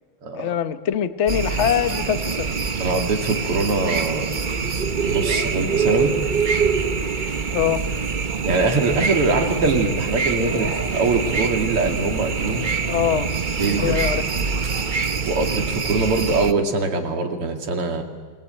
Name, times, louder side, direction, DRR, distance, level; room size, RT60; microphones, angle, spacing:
voice 1, 0.3-2.6 7.5-7.8 12.9-13.3 13.8-14.3, left 10 dB, 45° left, 12 dB, 1.0 m, -23 dB
sound 1, 1.3-16.5, right 5 dB, 50° right, 0.5 m, -24 dB
voice 2, 2.8-4.3 5.0-6.1 8.4-12.7 13.6-14.0 15.3-18.0, right 3 dB, 90° right, 4 dB, 3.4 m, -23 dB
27.5 x 20.5 x 9.1 m, 1.5 s
omnidirectional pair, 2.4 m